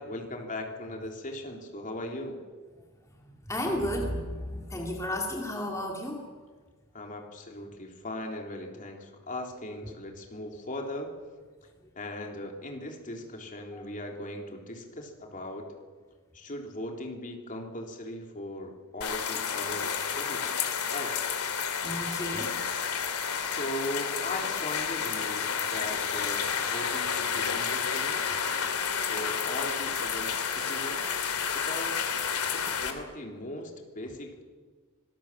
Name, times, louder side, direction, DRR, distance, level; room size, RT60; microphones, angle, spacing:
voice 1, 0.0-2.4 6.9-11.1 11.9-15.7 16.3-21.2 23.4-28.2 29.1-31.2 31.5-32.0 32.5-34.4, left 1 dB, 35° left, 2 dB, 3.4 m, -39 dB
voice 2, 3.5-6.2 13.7-13.8 21.8-22.5, left 1 dB, 15° left, 0 dB, 2.5 m, -32 dB
sound 1, 19.0-32.9, left 7 dB, 85° left, 2.7 m, -30 dB
25.5 x 19.5 x 7.4 m, 1.5 s
head